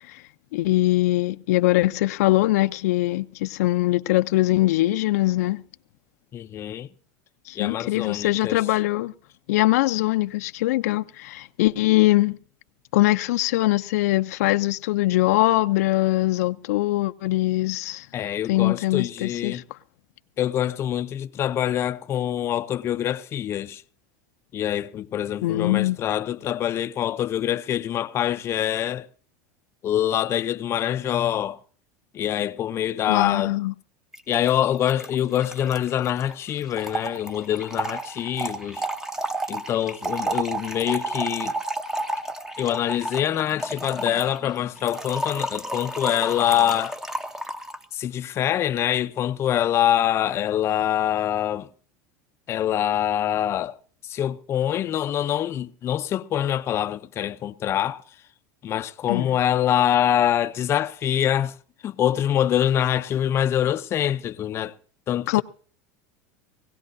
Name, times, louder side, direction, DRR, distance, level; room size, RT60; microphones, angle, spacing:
voice 1, 0.5-5.6 7.5-9.1 9.5-12.4 12.9-18.1 18.5-19.6 25.4-26.0 33.1-33.7 59.1-59.3 65.3-65.4, left 17 dB, 85° left, 0.6 m, -22 dB
voice 2, 6.3-6.9 7.5-8.6 18.1-19.6 20.4-23.8 24.5-29.1 29.8-31.6 32.1-33.6 34.3-38.9 39.5-41.5 42.6-47.0 47.9-51.7 52.5-53.8 54.0-58.0 58.6-61.5 61.8-64.7 65.1-65.4, left 11 dB, 30° left, 0.6 m, -25 dB
Trickle dribble / Fill (with liquid), 34.1-34.2 34.5-34.6 34.7-47.8, right 1 dB, 5° right, 0.8 m, -31 dB
21.0 x 17.0 x 2.7 m
supercardioid pair, 140°, 8 cm